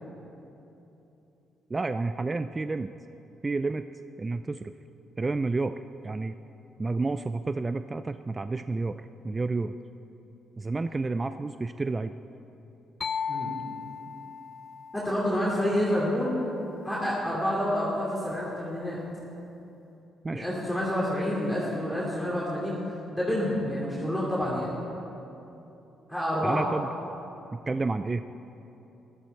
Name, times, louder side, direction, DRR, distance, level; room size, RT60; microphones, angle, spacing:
voice 1, 1.7-2.9 3.4-3.8 4.2-4.7 5.2-5.8 6.0-6.4 6.8-9.8 10.6-12.1 20.2-20.5 26.4-26.9 27.5-28.2, right 3 dB, 25° right, 11 dB, 0.3 m, -30 dB
sound 1, 13.0-16.7, left 6 dB, 45° left, 0.4 m, -37 dB
voice 2, 14.9-16.3 16.8-19.0 20.3-22.8 23.1-24.7 26.1-26.7, equal, 5° left, -6 dB, 2.6 m, -28 dB
15.0 x 11.5 x 4.4 m, 3.0 s
cardioid pair, 90°, 0 cm